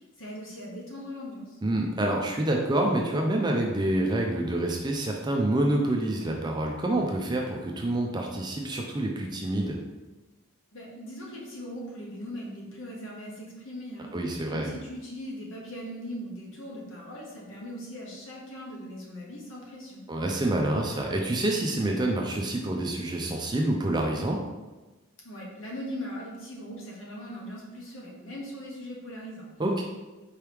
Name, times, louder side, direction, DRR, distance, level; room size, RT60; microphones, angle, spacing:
voice 1, 0.0-1.6 10.7-14.2 14.5-20.0 25.2-29.5, equal, 65° left, -3 dB, 1.1 m, -40 dB
voice 2, 1.6-9.8 14.1-14.7 20.1-24.4 29.6-29.8, right 1 dB, 20° right, 0 dB, 0.4 m, -27 dB
4.6 x 3.0 x 3.4 m, 1.2 s
head